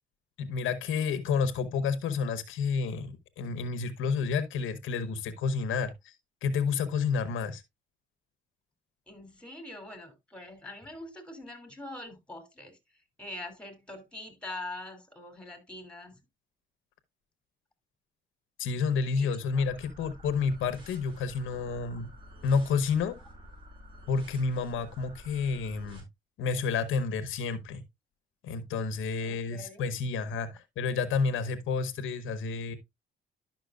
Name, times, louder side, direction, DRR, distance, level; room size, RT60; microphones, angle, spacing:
voice 1, 0.4-6.1 6.4-7.6 18.6-22.1 22.4-23.2 24.1-26.0 26.4-27.8 28.4-32.8, left 5 dB, 80° left, 1.0 m, -30 dB
voice 2, 9.1-12.8 13.2-16.2 19.2-19.6 29.2-29.9, left 2 dB, 5° left, 2.9 m, -43 dB
sound 1, 19.6-26.0, equal, 25° right, 5.3 m, -50 dB
11.5 x 5.9 x 2.4 m
cardioid pair, 90°, 20 cm